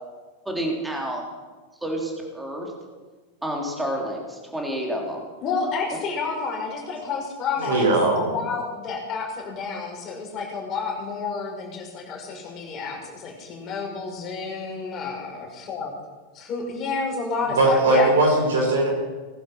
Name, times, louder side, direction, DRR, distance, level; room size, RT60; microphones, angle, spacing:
voice 1, 0.5-1.2 1.8-2.7 3.4-5.2, right 1 dB, 5° right, 0 dB, 3.5 m, -29 dB
voice 2, 5.4-7.9 8.2-15.9 16.3-18.1, left 4 dB, 30° left, 0 dB, 5.4 m, -30 dB
voice 3, 7.6-8.3 17.6-18.9, right 2 dB, 60° right, 1 dB, 4.6 m, -19 dB
19.5 x 11.5 x 6.3 m, 1.3 s
figure-of-eight pair, 90°, 0 cm